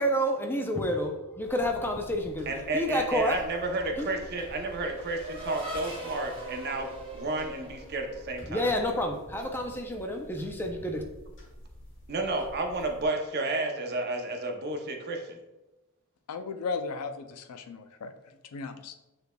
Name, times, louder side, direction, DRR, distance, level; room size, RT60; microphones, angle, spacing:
voice 1, 0.0-2.5 2.7-3.4 4.0-4.1 8.5-11.0, equal, 10° left, 3 dB, 0.4 m, -29 dB
sound 1, 1.4-13.1, left 1 dB, 60° left, 1.2 m, -50 dB
voice 2, 2.5-6.9 7.1-8.7 12.1-15.4, right 2 dB, 45° right, 4 dB, 0.6 m, -31 dB
Race car auto racing / Accelerating revving vroom, 2.6-8.7, right 1 dB, 25° right, 0.9 m, -42 dB
voice 3, 16.3-18.1 18.5-18.9, left 4 dB, 80° left, 9 dB, 0.4 m, -36 dB
7.1 x 3.3 x 2.2 m, 1.0 s
head